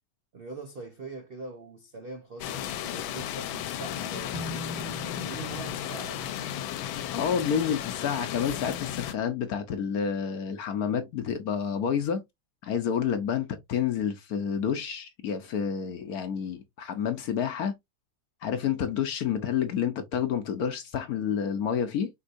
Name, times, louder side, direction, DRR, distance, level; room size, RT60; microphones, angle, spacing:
voice 1, 0.3-6.4, right 3 dB, 85° right, 0.5 m, -43 dB
sound 1, 2.4-9.1, left 11 dB, 85° left, 1.4 m, -34 dB
sound 2, 4.3-9.9, left 1 dB, 10° right, 0.8 m, -45 dB
voice 2, 7.1-12.2 12.6-17.7 18.4-22.1, left 8 dB, 60° left, 1.0 m, -29 dB
5.3 x 3.8 x 2.5 m
omnidirectional pair, 2.1 m